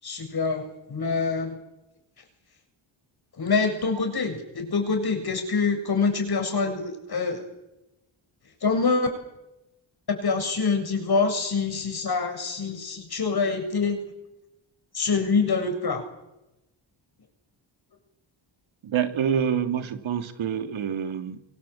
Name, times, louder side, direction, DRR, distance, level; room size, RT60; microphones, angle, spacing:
voice 1, 0.0-1.6 3.4-7.4 8.6-9.1 10.1-14.0 14.9-16.0, left 4 dB, 50° left, 5 dB, 7.4 m, -25 dB
voice 2, 18.8-21.4, right 8 dB, 75° right, 8 dB, 2.4 m, -27 dB
29.0 x 24.5 x 8.4 m, 0.95 s
cardioid pair, 85°, 47 cm